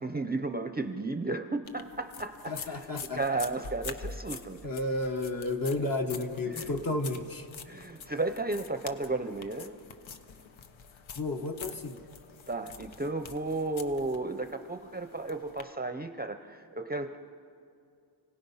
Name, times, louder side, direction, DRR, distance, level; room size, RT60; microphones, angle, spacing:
voice 1, 0.0-2.9 3.1-4.7 5.8-5.9 6.5-6.7 7.6-9.8 12.5-17.3, right 2 dB, 20° right, 8 dB, 0.6 m, -34 dB
sound 1, 1.7-15.6, left 5 dB, 85° left, 1.1 m, -46 dB
voice 2, 2.5-3.2 4.6-7.5 11.1-12.0, left 2 dB, 45° left, 3 dB, 1.2 m, -32 dB
29.5 x 18.0 x 5.6 m, 2.4 s
wide cardioid pair, 160°, 46 cm